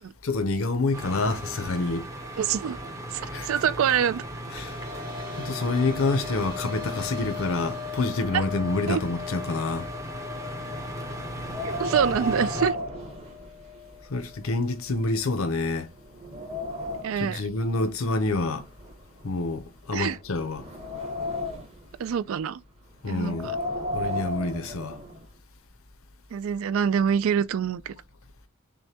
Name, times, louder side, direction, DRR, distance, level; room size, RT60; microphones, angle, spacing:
voice 1, 0.2-2.1 3.3-3.5 4.5-4.8 5.4-9.9 14.1-15.9 17.2-18.7 19.2-20.7 23.0-23.5 23.9-25.0, left 3 dB, 75° left, 0.7 m, -27 dB
sound 1, 0.9-12.7, right 1 dB, 15° right, 0.7 m, -37 dB
voice 2, 2.4-2.8 3.1-4.2 8.3-8.4 8.9-9.0 11.6-12.8 17.0-17.4 19.9-20.2 22.0-22.6 23.1-23.6 26.3-28.0, right 8 dB, 70° right, 0.3 m, -25 dB
sound 2, 4.3-15.7 16.0-16.1 17.7-17.8, left 8 dB, 45° right, 1.7 m, -41 dB
Wind, 11.3-14.0 14.3-14.4 15.1-15.2 15.7-17.3 18.2-19.7 20.2-21.9 23.1-25.2, left 1 dB, 30° right, 1.1 m, -34 dB
6.3 x 2.2 x 2.8 m
head